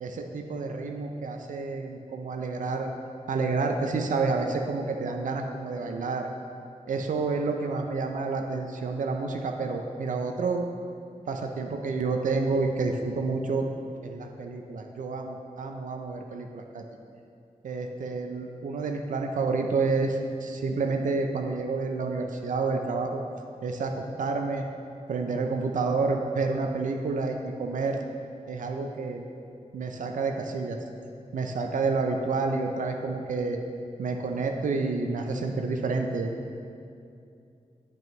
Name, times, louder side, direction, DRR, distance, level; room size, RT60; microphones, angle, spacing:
voice 1, 0.0-2.9 3.3-6.3 6.9-10.7 11.3-13.7 14.0-16.8 17.6-23.2 23.6-24.7 25.1-28.0 28.5-29.2 29.7-30.8 31.3-33.6 34.0-36.3, right 4 dB, 80° right, 4 dB, 0.5 m, -29 dB
9.0 x 5.2 x 3.1 m, 2.5 s
wide cardioid pair, 140°, 13 cm